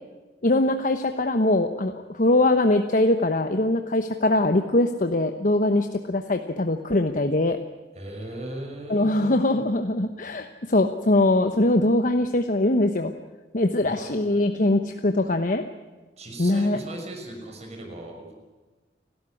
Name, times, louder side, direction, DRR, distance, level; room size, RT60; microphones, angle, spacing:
voice 1, 0.4-7.6 8.9-13.1 13.5-15.6 16.4-16.8, left 2 dB, 50° left, 6 dB, 1.1 m, -22 dB
voice 2, 7.9-9.6 13.8-14.1 16.2-18.3, right 1 dB, 40° right, 2 dB, 6.0 m, -38 dB
30.0 x 13.0 x 9.9 m, 1.2 s
head